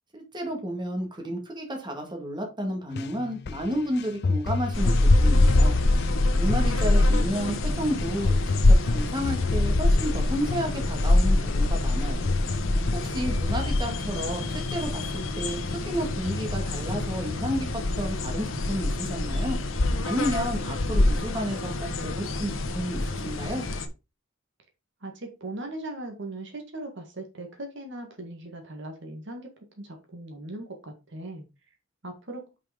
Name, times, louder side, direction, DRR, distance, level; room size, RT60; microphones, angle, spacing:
voice 1, 0.1-5.8 6.3-12.3 12.9-19.6 20.0-21.7 22.0-23.6, equal, 20° right, 2 dB, 2.0 m, -31 dB
sound 1, 2.9-15.1 15.5-15.7 16.0-18.1 18.5-19.1 19.5-19.6, left 3 dB, 55° left, 0.5 m, -32 dB
sound 2, 4.7-23.9, left 2 dB, 75° left, 1.1 m, -25 dB
voice 2, 6.7-7.3 25.0-29.5 29.8-31.5 32.0-32.4, right 2 dB, 60° right, 3 dB, 1.9 m, -39 dB
5.7 x 5.3 x 5.0 m, 0.28 s
head